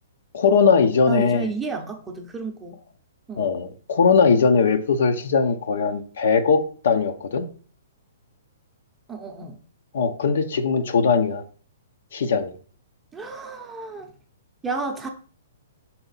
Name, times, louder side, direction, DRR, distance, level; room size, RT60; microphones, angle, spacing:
voice 1, 0.3-1.5 3.4-7.5 9.9-11.4 12.1-12.5, left 5 dB, 65° left, 7 dB, 0.8 m, -20 dB
voice 2, 1.1-2.8 3.3-3.5 9.1-9.6 13.1-14.1 14.6-15.1, right 4 dB, 10° right, 3 dB, 0.7 m, -31 dB
5.6 x 4.2 x 4.0 m, 0.41 s
hypercardioid pair, 155°, 0 cm